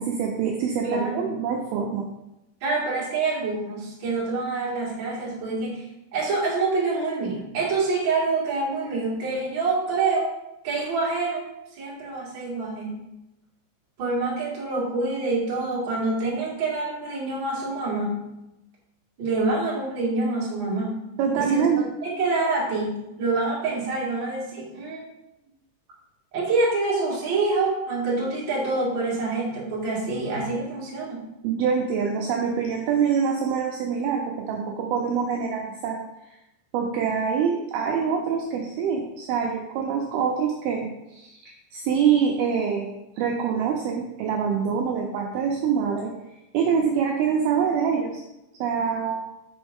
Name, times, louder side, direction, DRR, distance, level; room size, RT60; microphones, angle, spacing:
voice 1, 0.0-2.1 21.2-21.9 31.4-36.0 36.7-42.9 43.2-46.1 46.5-48.2 48.6-49.3, right 6 dB, 85° right, 1 dB, 2.2 m, -25 dB
voice 2, 0.8-1.3 2.6-5.8 6.1-10.3 10.6-11.5 11.8-13.0 14.0-18.2 19.2-21.0 21.3-25.0 26.3-31.3, right 3 dB, 45° right, -6 dB, 1.6 m, -26 dB
6.1 x 5.4 x 3.6 m, 0.92 s
omnidirectional pair, 5.1 m